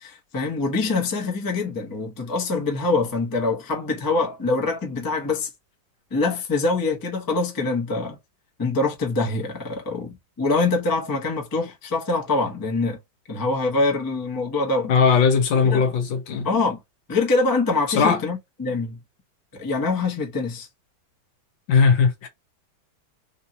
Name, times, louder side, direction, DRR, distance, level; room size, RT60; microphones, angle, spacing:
voice 1, 0.0-5.5 6.1-8.2 8.6-13.0 13.3-14.9 15.7-15.9 16.4-16.8 17.1-19.0 19.5-20.7, left 3 dB, 20° left, 0.6 m, -24 dB
voice 2, 14.8-16.5 17.9-18.2 21.7-22.3, left 5 dB, 70° left, 1.5 m, -18 dB
3.5 x 2.8 x 2.7 m
omnidirectional pair, 2.2 m